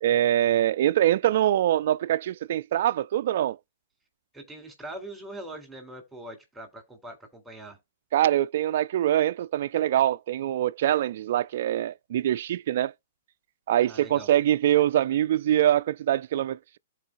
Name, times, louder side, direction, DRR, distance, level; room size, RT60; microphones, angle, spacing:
voice 1, 0.0-3.6 8.1-12.9 13.7-16.8, right 12 dB, 60° right, 0.3 m, -24 dB
voice 2, 4.3-7.8 13.9-14.3, right 1 dB, 5° right, 3.7 m, -42 dB
13.5 x 4.5 x 2.5 m
hypercardioid pair, 140°, 0 cm